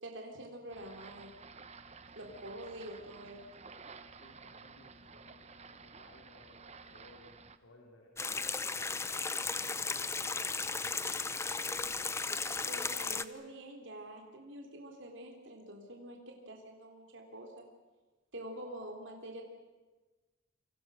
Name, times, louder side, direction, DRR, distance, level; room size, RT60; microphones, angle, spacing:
voice 1, 0.0-1.3 2.2-3.7 12.7-17.7 18.3-19.4, right 1 dB, 65° right, 2 dB, 3.7 m, -46 dB
sound 1, 0.7-7.6, right 4 dB, 35° right, 1.1 m, -53 dB
voice 2, 4.1-8.6 9.4-11.4, left 1 dB, 85° left, -1 dB, 4.6 m, -61 dB
sound 2, 8.2-13.3, left 4 dB, 15° left, 0.7 m, -35 dB
28.0 x 25.5 x 6.5 m, 1.2 s
head